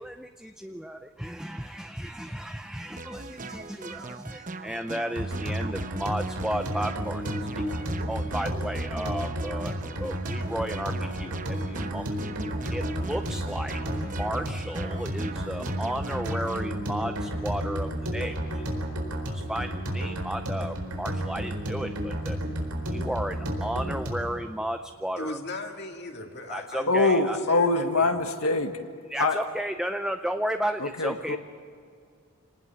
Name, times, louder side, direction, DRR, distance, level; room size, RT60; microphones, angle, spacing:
voice 1, 0.0-12.1 12.7-18.6 19.3-22.4 22.9-25.4 26.5-27.4 28.0-28.1 29.1-31.4, equal, 5° right, 7 dB, 0.5 m, -34 dB
sound 1, 3.0-16.7, right 3 dB, 35° right, 1.0 m, -41 dB
sound 2, 5.2-24.4, equal, 90° right, 4.3 m, -32 dB
voice 2, 25.2-28.2, left 2 dB, 50° left, 3 dB, 2.2 m, -38 dB
voice 3, 26.9-28.7 29.2-29.4 30.8-31.4, left 3 dB, 75° left, 5 dB, 1.8 m, -24 dB
27.0 x 19.0 x 7.2 m, 2.3 s
head